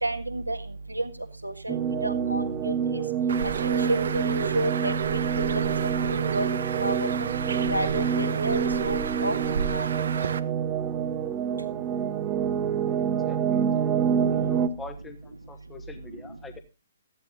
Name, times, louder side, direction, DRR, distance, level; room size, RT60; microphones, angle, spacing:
voice 1, 0.0-0.6 1.0-1.1 1.4-1.8 2.0-2.4 3.9-4.2 4.5-4.9 6.0-6.5 6.8-7.0 7.7-9.3 9.7-9.9, right 1 dB, 90° right, 7 dB, 1.7 m, -29 dB
sound 1, 1.7-14.7, right 7 dB, 15° right, 1.4 m, -27 dB
Bird, 3.3-10.4, right 6 dB, 60° right, 0.9 m, -31 dB
voice 2, 13.1-13.7 14.3-16.6, left 3 dB, 10° left, 7 dB, 1.3 m, -44 dB
14.0 x 10.5 x 3.9 m, 0.28 s
figure-of-eight pair, 125°, 0 cm